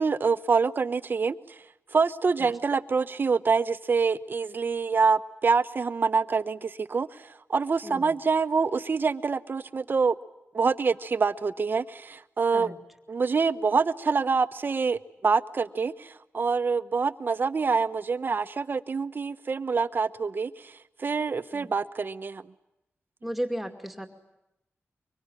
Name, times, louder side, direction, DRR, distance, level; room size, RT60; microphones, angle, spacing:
voice 1, 0.0-1.6 1.9-10.1 10.5-12.7 13.1-22.4, right 5 dB, 45° right, 11 dB, 1.0 m, -26 dB
voice 2, 7.8-8.2 12.5-12.8 21.5-21.7 23.2-24.1, right 1 dB, ahead, 6 dB, 2.4 m, -34 dB
24.5 x 24.5 x 9.9 m, 0.89 s
wide cardioid pair, 145°, 5 cm